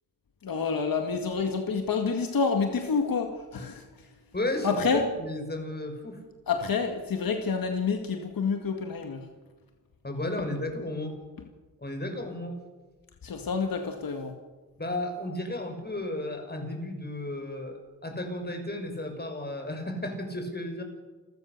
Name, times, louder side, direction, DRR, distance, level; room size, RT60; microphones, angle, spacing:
voice 1, 0.4-4.1 4.6-5.0 6.5-9.3 11.4-11.5 13.2-14.4, left 5 dB, 80° left, 4 dB, 2.0 m, -28 dB
voice 2, 4.3-6.2 10.0-11.1 11.8-12.6 14.8-17.7 18.0-20.8, left 1 dB, 30° left, 5 dB, 5.9 m, -33 dB
28.5 x 15.0 x 6.7 m, 1.3 s
cardioid pair, 65°, 34 cm